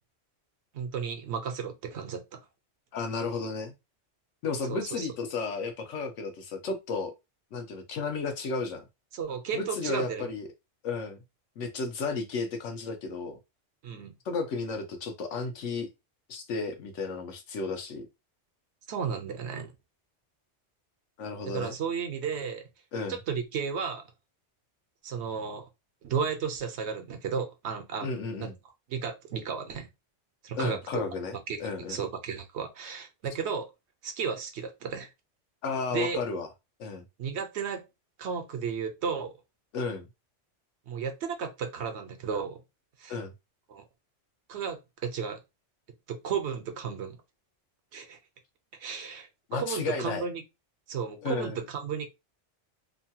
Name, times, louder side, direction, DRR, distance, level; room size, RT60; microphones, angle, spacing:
voice 1, 0.7-2.2 4.7-5.1 9.1-10.3 13.8-14.1 18.9-19.7 21.4-22.6 23.1-24.0 25.0-25.7 26.0-28.1 28.4-28.5 28.9-29.9 30.4-30.8 31.5-31.6 31.9-33.7 34.0-35.1 35.9-36.2 37.2-37.8 38.2-39.3 40.9-42.6 43.0-43.2 43.7-43.8 44.5-45.4 46.1-47.2 47.9-48.2 48.7-50.4 50.9-52.1, right 6 dB, 70° right, 0.9 m, -33 dB
voice 2, 2.9-3.7 4.4-7.1 7.5-8.8 9.5-10.5 10.8-11.2 11.6-13.4 14.2-15.9 16.3-18.1 21.2-21.8 22.9-23.2 28.0-28.5 30.6-32.0 35.6-36.5 36.8-37.0 39.7-40.1 43.1-43.3 49.5-50.2 51.2-51.6, left 4 dB, 85° left, 1.1 m, -33 dB
2.9 x 2.2 x 2.7 m
omnidirectional pair, 1.2 m